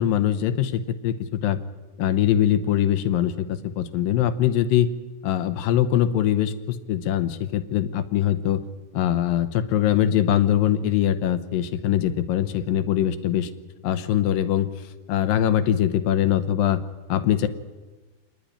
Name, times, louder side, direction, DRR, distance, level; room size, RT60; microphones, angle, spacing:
voice 1, 0.0-1.6 2.0-4.9 5.2-8.6 8.9-13.5 13.8-14.7 15.1-16.8 17.1-17.5, left 11 dB, 75° left, 12 dB, 2.3 m, -22 dB
26.0 x 10.5 x 10.0 m, 1.3 s
omnidirectional pair, 4.7 m